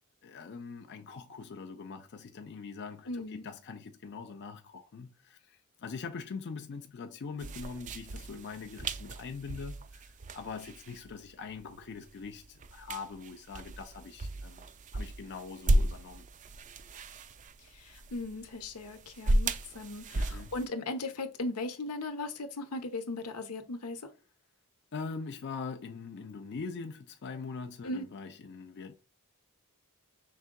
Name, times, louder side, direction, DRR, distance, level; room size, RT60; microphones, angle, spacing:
voice 1, 0.2-14.7 14.9-16.3 20.1-20.5 24.9-29.0, left 5 dB, 50° left, 0.4 m, -42 dB
voice 2, 3.1-3.4 17.7-24.1 27.8-28.0, left 2 dB, 90° left, 0.9 m, -38 dB
sound 1, 7.4-20.7, right 1 dB, 35° right, 0.4 m, -35 dB
5.5 x 3.6 x 2.2 m
head